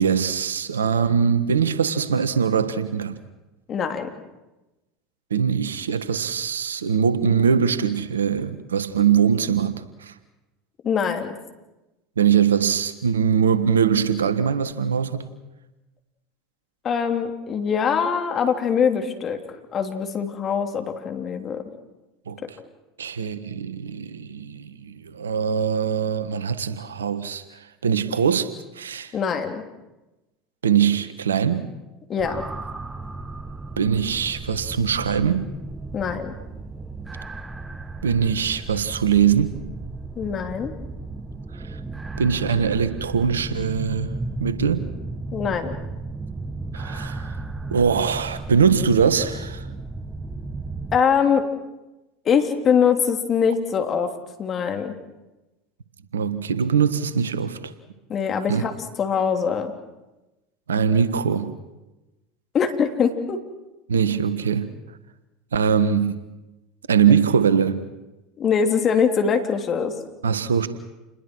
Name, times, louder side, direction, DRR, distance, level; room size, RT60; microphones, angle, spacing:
voice 1, 0.0-3.2 5.3-10.1 12.2-15.3 22.3-22.4 23.0-28.5 28.7-29.1 30.6-31.7 33.8-35.5 38.0-39.6 41.5-41.8 42.2-44.9 46.7-47.3 47.7-49.7 56.1-57.7 58.5-58.6 60.7-61.5 63.9-64.7 65.5-66.2 66.9-67.8 70.2-70.7, right 7 dB, 85° right, 13 dB, 1.5 m, -22 dB
voice 2, 3.7-4.1 10.8-11.4 16.8-19.4 19.7-21.6 29.1-29.6 32.1-32.4 35.9-36.3 40.2-40.7 45.3-45.8 50.9-51.5 52.2-54.1 54.4-54.9 58.1-58.7 59.0-59.7 62.5-63.4 68.4-69.9, left 6 dB, 40° left, 6 dB, 3.3 m, -23 dB
sound 1, 32.2-51.0, right 3 dB, 15° right, 1.6 m, -34 dB
29.0 x 21.0 x 6.3 m, 1.0 s
hypercardioid pair, 80°, 0 cm